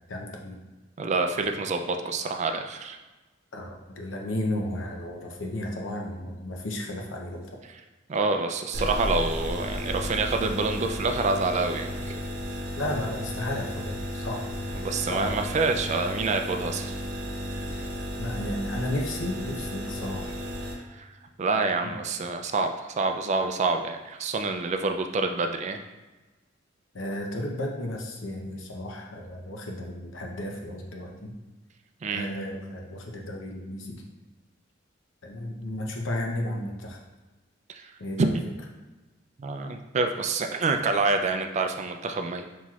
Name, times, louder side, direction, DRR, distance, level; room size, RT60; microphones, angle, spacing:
voice 1, 0.1-0.6 3.5-7.6 12.8-14.4 15.1-15.4 17.7-17.9 18.2-20.4 21.8-21.9 26.9-31.3 32.1-34.0 35.2-37.0 38.0-38.3, left 1 dB, 90° left, 1 dB, 0.7 m, -33 dB
voice 2, 1.0-3.0 8.1-12.2 14.8-16.9 20.9-21.1 21.4-25.8 32.0-32.3 37.7-37.9 38.2-38.3 39.4-42.4, right 3 dB, 35° right, 5 dB, 0.3 m, -27 dB
sound 1, 8.7-20.7, equal, 55° right, 0.8 m, -33 dB
5.7 x 3.0 x 2.4 m, 1.2 s
head